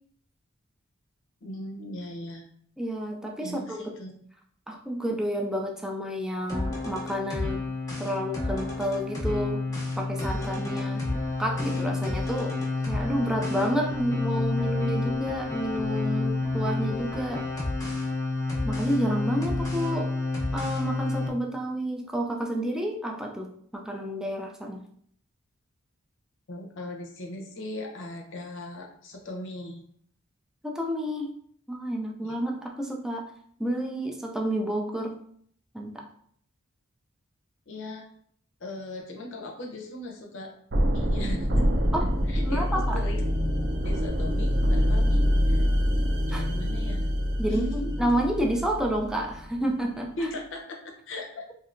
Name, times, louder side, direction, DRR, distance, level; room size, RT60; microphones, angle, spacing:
voice 1, 1.4-2.4 3.4-4.1 26.5-29.8 32.2-32.3 37.7-38.1 38.6-40.5 40.8-41.7 42.3-43.2 43.8-45.2 45.5-45.6 46.3-47.0 47.5-48.1 50.2-51.5, left 1 dB, 65° left, 2 dB, 0.6 m, -38 dB
voice 2, 2.8-3.8 4.7-7.6 8.0-9.6 10.0-11.0 11.4-12.5 12.9-17.4 18.6-20.1 20.5-23.5 23.7-24.8 30.6-31.3 31.7-33.3 33.6-35.2 35.7-36.0 41.9-42.1 42.4-43.0 46.3-46.4 47.4-50.1, equal, 5° right, 1 dB, 0.4 m, -30 dB
sound 1, 6.5-21.3, left 3 dB, 15° left, 0.7 m, -29 dB
sound 2, 40.7-49.6, equal, 50° right, 0.6 m, -25 dB
3.2 x 2.7 x 2.5 m, 0.63 s
head